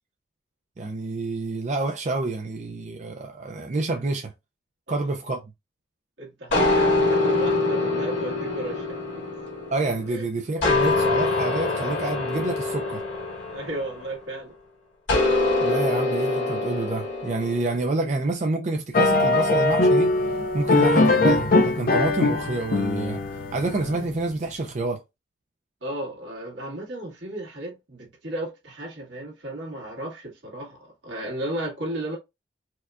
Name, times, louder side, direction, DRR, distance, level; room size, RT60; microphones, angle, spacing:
voice 1, 0.8-4.3 4.9-5.4 9.7-13.0 15.6-20.1 20.5-23.2 23.5-25.0, right 2 dB, 40° right, 0.4 m, -28 dB
voice 2, 6.2-9.4 10.1-10.3 13.5-14.5 25.8-32.2, right 1 dB, 80° right, 1.6 m, -34 dB
sound 1, 6.5-10.1 10.6-14.3 15.1-17.8, left 2 dB, 85° left, 1.9 m, -24 dB
sound 2, 18.9-24.2, left 2 dB, 50° left, 0.4 m, -21 dB
4.5 x 2.2 x 2.4 m
head